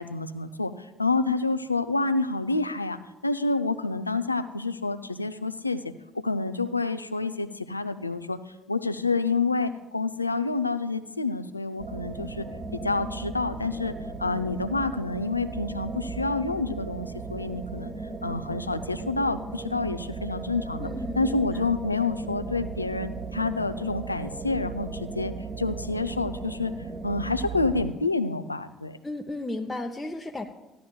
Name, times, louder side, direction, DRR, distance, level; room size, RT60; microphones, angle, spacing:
voice 1, 0.0-8.4 8.7-12.5 12.8-13.9 14.2-17.9 18.2-26.7 27.0-29.0, left 3 dB, 90° left, 11 dB, 0.4 m, -28 dB
sound 1, 11.8-27.9, right 4 dB, 35° right, 1.1 m, -36 dB
voice 2, 20.8-21.6 29.0-30.4, left 2 dB, 15° left, 2 dB, 0.7 m, -34 dB
14.5 x 11.5 x 2.3 m, 1.0 s
figure-of-eight pair, 55°, 0 cm